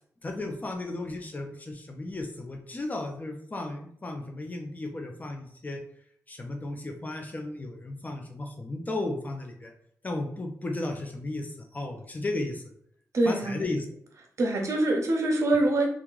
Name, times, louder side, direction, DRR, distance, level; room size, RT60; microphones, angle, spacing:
voice 1, 0.2-5.8 6.3-9.7 10.0-11.5 11.7-12.6 13.3-13.8, left 2 dB, 30° left, 4 dB, 0.7 m, -34 dB
voice 2, 13.1-13.6 14.4-15.9, right 2 dB, 55° right, 1 dB, 0.9 m, -24 dB
3.0 x 2.4 x 3.7 m, 0.65 s
cardioid pair, 90°, 6 cm